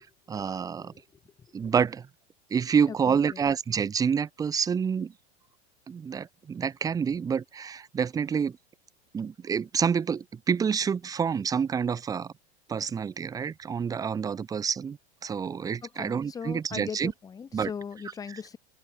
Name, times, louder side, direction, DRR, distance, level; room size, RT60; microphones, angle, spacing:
voice 1, 0.3-0.9 1.5-2.0 2.5-5.1 5.9-8.6 9.1-12.3 12.7-17.1 17.5-17.7, right 6 dB, 10° right, 1.1 m, -28 dB
voice 2, 2.9-3.4 15.8-18.6, left 6 dB, 10° left, 1.3 m, -39 dB
open air
supercardioid pair, 165°, 33 cm